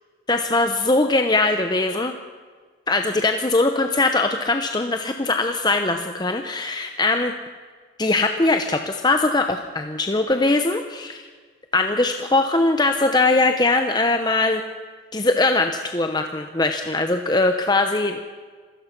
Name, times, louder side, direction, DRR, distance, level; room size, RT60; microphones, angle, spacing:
voice 1, 0.3-2.1 2.9-7.3 8.0-11.2 11.7-14.6 15.1-18.1, left 2 dB, 20° left, 6 dB, 0.9 m, -21 dB
27.5 x 16.0 x 6.0 m, 1.5 s
head